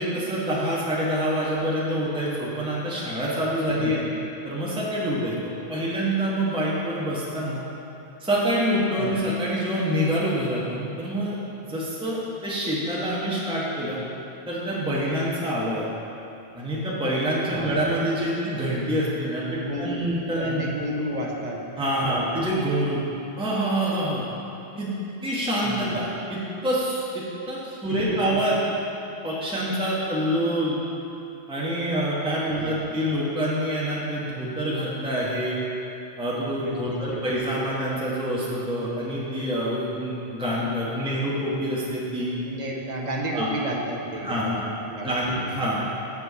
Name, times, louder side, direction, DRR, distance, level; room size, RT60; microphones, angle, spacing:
voice 1, 0.0-4.0 4.4-7.6 8.2-11.4 11.6-14.0 14.5-15.8 16.5-20.7 21.8-23.0 23.4-24.2 24.7-24.9 25.2-28.6 29.2-30.8 31.5-35.6 36.2-42.3 43.3-43.5 44.2-44.7 45.0-45.8, equal, 5° right, -7 dB, 1.1 m, -26 dB
voice 2, 3.7-4.1 9.0-9.2 17.5-17.9 19.5-21.7 22.0-22.4 25.6-26.1 27.9-28.4 32.5-32.9 36.6-37.4 42.4-45.5, right 1 dB, 45° right, -1 dB, 0.9 m, -33 dB
7.4 x 4.6 x 6.8 m, 2.8 s
omnidirectional pair, 1.1 m